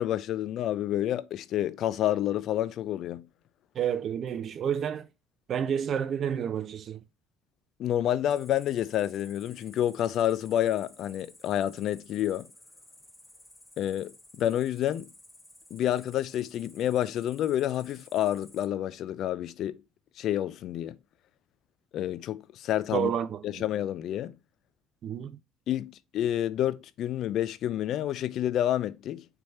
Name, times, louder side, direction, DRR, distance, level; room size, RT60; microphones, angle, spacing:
voice 1, 0.0-3.3 7.8-12.5 13.8-15.1 15.7-19.8 20.2-21.0 21.9-23.1 23.4-24.4 25.7-29.3, left 11 dB, 60° left, 0.4 m, -29 dB
voice 2, 3.7-5.1 5.5-7.0 22.9-23.6 25.0-25.3, right 8 dB, 50° right, 0.5 m, -30 dB
Cricket, 8.3-18.6, left 1 dB, 15° left, 1.5 m, -55 dB
3.4 x 3.1 x 4.2 m
hypercardioid pair, 55°, 0 cm